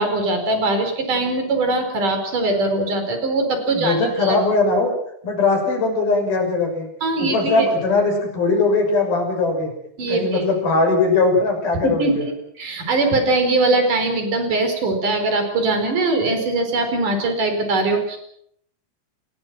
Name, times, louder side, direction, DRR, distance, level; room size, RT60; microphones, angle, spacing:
voice 1, 0.0-4.4 7.0-7.7 10.0-10.5 11.8-18.2, right 2 dB, 45° right, 6 dB, 5.9 m, -21 dB
voice 2, 3.7-4.9 5.2-6.9 7.2-9.7 10.1-12.2, left 3 dB, 55° left, 3 dB, 8.1 m, -20 dB
28.5 x 20.5 x 6.2 m, 0.70 s
omnidirectional pair, 5.1 m